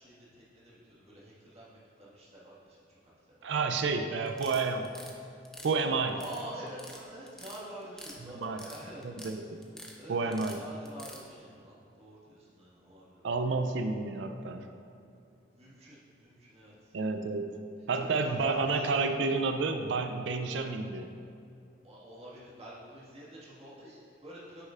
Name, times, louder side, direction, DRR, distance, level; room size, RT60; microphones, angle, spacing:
voice 1, 0.0-2.8 3.3-3.4 6.1-9.1 9.9-13.3 15.5-16.9 17.9-18.9 21.8-24.7, right 1 dB, 30° right, -7 dB, 1.7 m, -47 dB
voice 2, 3.4-4.9 5.6-6.2 8.4-8.6 9.0-9.4 10.1-10.6 13.2-14.7 16.9-17.5 17.9-21.1, right 4 dB, 75° right, 6 dB, 0.4 m, -30 dB
sound 1, 4.3-5.1 5.4-6.4 6.7-7.0 7.3-8.2 8.4-9.3 9.6-9.9 10.3-11.2, left 1 dB, 5° left, 0.5 m, -47 dB
9.5 x 6.5 x 2.5 m, 2.6 s
head